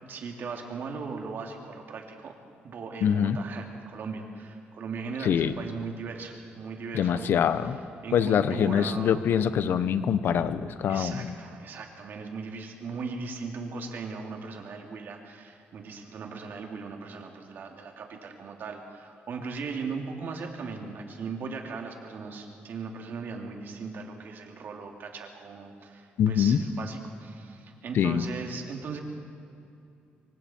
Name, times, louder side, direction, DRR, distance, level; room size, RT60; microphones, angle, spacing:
voice 1, 0.0-2.3 2.6-7.3 8.0-9.2 10.9-29.0, right 4 dB, 60° right, 2 dB, 2.9 m, -38 dB
voice 2, 3.0-3.4 5.2-5.5 6.9-7.8 8.1-11.3 26.2-26.6 27.9-28.2, left 8 dB, 65° left, 13 dB, 0.9 m, -24 dB
26.0 x 24.0 x 4.5 m, 2.7 s
cardioid pair, 130°, 4 cm